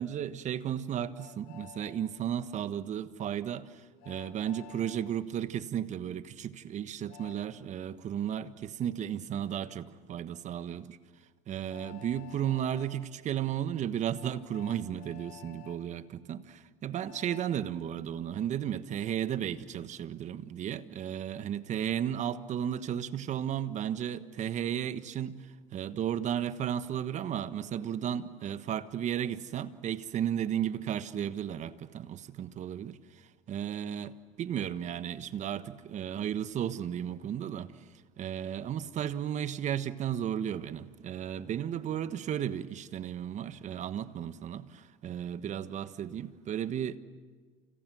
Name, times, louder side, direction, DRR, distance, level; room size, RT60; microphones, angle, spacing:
voice 1, 0.0-11.0 11.5-33.0 33.5-37.7 38.2-47.0, right 9 dB, 45° right, 1.3 m, -34 dB
Train, 1.2-2.0 4.0-5.0 7.1-7.4 9.5-9.6 11.7-12.9 14.1-15.8 17.0-17.6, left 13 dB, 70° left, 3.3 m, -51 dB
29.5 x 28.5 x 6.3 m
supercardioid pair, 95°, 17 cm